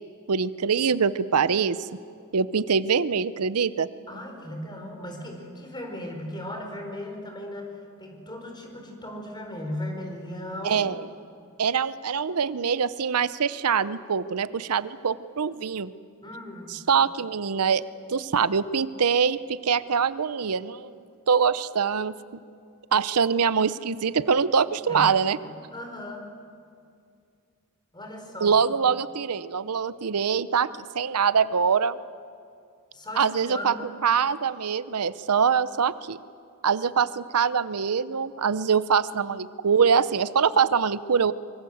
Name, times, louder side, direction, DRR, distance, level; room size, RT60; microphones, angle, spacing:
voice 1, 0.3-1.9 2.3-3.9 10.6-11.0 11.6-15.9 16.7-17.8 18.1-20.9 21.3-22.1 22.9-25.4 28.4-30.7 30.9-32.0 33.2-33.7 34.0-36.2 36.6-41.3, right 6 dB, 90° right, 16 dB, 0.7 m, -24 dB
voice 2, 4.1-10.8 16.2-16.8 24.9-25.4 25.7-26.2 27.9-28.5 32.9-33.9, left 1 dB, 20° left, 3 dB, 4.5 m, -37 dB
24.5 x 23.0 x 7.9 m, 2.3 s
head